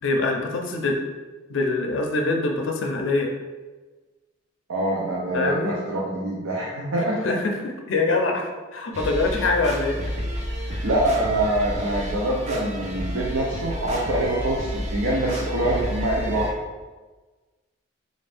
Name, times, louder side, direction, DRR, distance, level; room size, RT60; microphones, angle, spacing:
voice 1, 0.0-1.0 1.5-3.3 5.3-5.8 7.2-10.1 10.7-10.9, left 3 dB, 70° left, 2 dB, 0.5 m, -24 dB
voice 2, 4.7-7.2 10.8-16.5, right 1 dB, 80° right, -4 dB, 0.6 m, -25 dB
sound 1, 8.9-16.5, equal, 35° right, 0.5 m, -30 dB
3.9 x 2.6 x 3.4 m, 1.3 s
head